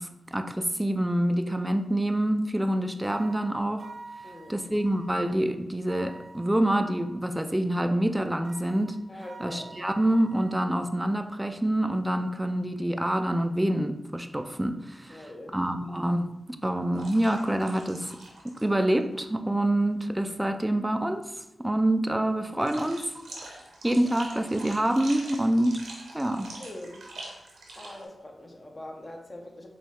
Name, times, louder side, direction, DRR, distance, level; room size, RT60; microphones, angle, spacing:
voice 1, 0.0-3.9 4.5-9.0 9.4-18.2 18.4-23.0 23.8-25.8 26.1-26.5, right 1 dB, 15° right, 0.4 m, -26 dB
sound 1, 3.0-5.2 5.9-7.1 8.4-10.6, right 3 dB, 65° right, 0.6 m, -47 dB
voice 2, 4.2-4.7 9.1-9.7 15.1-15.6 26.6-27.0 27.8-29.7, left 1 dB, 35° left, 0.9 m, -43 dB
sound 2, 16.9-18.7 19.0-19.2 22.6-28.0, right 2 dB, 90° right, 0.9 m, -44 dB
5.0 x 2.3 x 3.5 m
cardioid pair, 45°, 0 cm